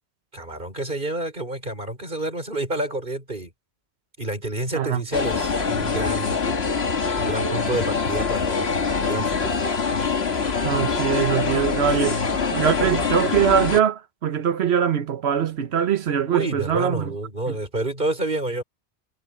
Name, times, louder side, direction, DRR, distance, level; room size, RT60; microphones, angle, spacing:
voice 1, 0.3-3.5 4.2-6.4 7.2-8.8 9.0-9.6 16.3-18.6, right 1 dB, 50° right, 5.8 m, -29 dB
voice 2, 4.7-5.0 10.6-12.2 12.5-17.1 17.5-17.6, right 8 dB, 75° right, 1.2 m, -22 dB
sound 1, 5.1-13.8, left 5 dB, 70° left, 2.0 m, -24 dB
omnidirectional pair, 1.1 m